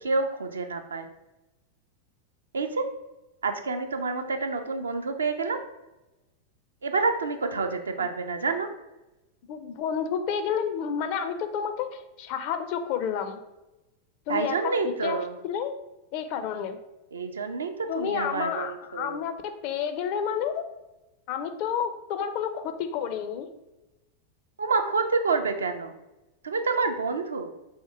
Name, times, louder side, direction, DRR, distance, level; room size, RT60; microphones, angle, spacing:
voice 1, 0.0-1.1 2.5-2.9 3.4-5.6 6.8-8.7 14.3-15.3 17.1-19.2 24.6-25.9 26.4-27.5, right 4 dB, 70° right, 7 dB, 0.4 m, -28 dB
voice 2, 9.5-13.4 14.3-14.7 15.0-15.2 15.4-15.7 16.1-16.8 17.9-19.3 19.6-20.7 21.3-23.5, left 7 dB, 45° left, 8 dB, 0.4 m, -30 dB
3.6 x 2.6 x 4.5 m, 1.0 s
figure-of-eight pair, 90°, 0 cm